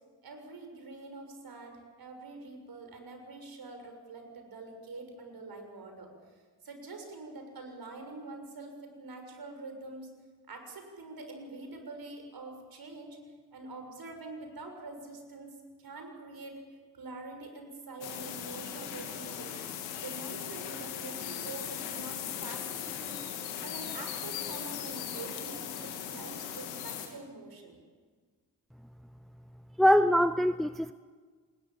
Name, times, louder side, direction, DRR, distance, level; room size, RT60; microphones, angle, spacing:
voice 1, 0.2-10.1 10.5-13.2 13.5-16.5 16.9-19.6 20.0-23.2 23.6-27.8, right 3 dB, 45° right, 4 dB, 6.9 m, -45 dB
sound 1, 18.0-27.1, left 9 dB, 75° left, 2.8 m, -38 dB
voice 2, 29.8-30.9, equal, ahead, 14 dB, 0.8 m, -23 dB
27.5 x 21.0 x 7.4 m, 1.5 s
figure-of-eight pair, 40°, 50 cm